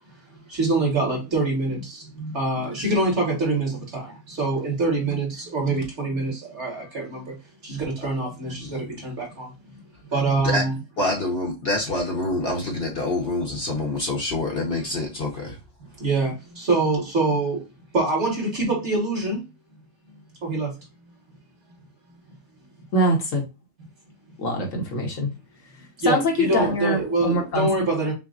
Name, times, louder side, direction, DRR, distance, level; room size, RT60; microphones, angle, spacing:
voice 1, 0.5-7.3 7.6-9.5 10.1-10.8 13.1-13.2 16.0-17.6 17.9-19.4 20.4-20.7 21.0-21.1 21.7-21.8 26.0-28.1, right 3 dB, 50° right, 1.9 m, -25 dB
voice 2, 8.6-9.0 10.4-10.6 11.0-15.6, left 2 dB, 45° left, 1.0 m, -26 dB
voice 3, 22.9-23.5 24.4-25.3 26.1-27.7, equal, 65° left, 1.3 m, -23 dB
5.8 x 2.1 x 2.4 m
omnidirectional pair, 1.6 m